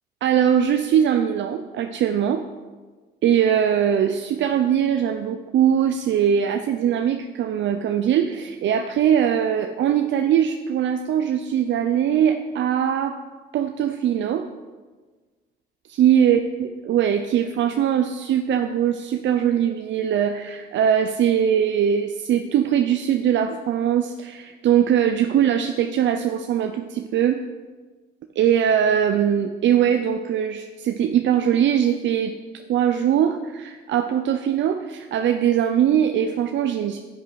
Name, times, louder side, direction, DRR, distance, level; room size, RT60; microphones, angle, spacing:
voice 1, 0.2-2.4 3.2-13.2 13.5-14.5 15.9-27.4 28.4-32.3 32.7-37.0, right 9 dB, 70° right, 7 dB, 0.6 m, -21 dB
10.0 x 8.5 x 4.7 m, 1.4 s
cardioid pair, 90°, 20 cm